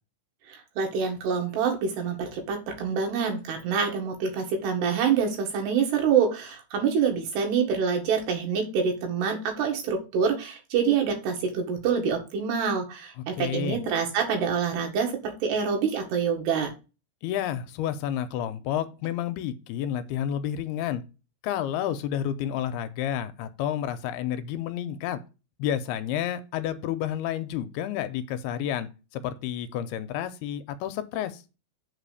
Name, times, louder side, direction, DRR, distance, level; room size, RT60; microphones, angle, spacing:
voice 1, 0.5-16.7, right 6 dB, 90° right, 4.0 m, -26 dB
voice 2, 13.4-13.8 17.2-21.0 21.4-25.2 25.6-31.4, left 10 dB, 85° left, 2.6 m, -30 dB
7.5 x 4.1 x 6.8 m
omnidirectional pair, 4.6 m